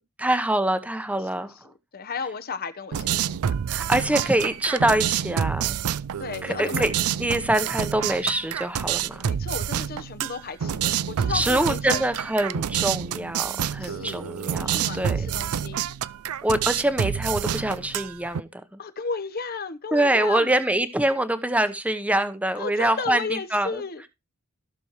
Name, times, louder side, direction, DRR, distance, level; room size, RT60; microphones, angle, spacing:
voice 1, 0.2-1.5 3.7-5.8 6.4-6.9 7.2-9.3 11.3-15.4 16.4-18.8 19.9-23.8, right 1 dB, 5° right, 0.8 m, -25 dB
voice 2, 1.9-3.4 6.2-6.9 9.2-12.1 13.5-15.9 18.8-20.5 22.6-24.1, left 4 dB, 45° left, 0.9 m, -34 dB
sound 1, 2.9-18.4, right 9 dB, 85° right, 0.4 m, -28 dB
15.0 x 6.2 x 3.0 m
head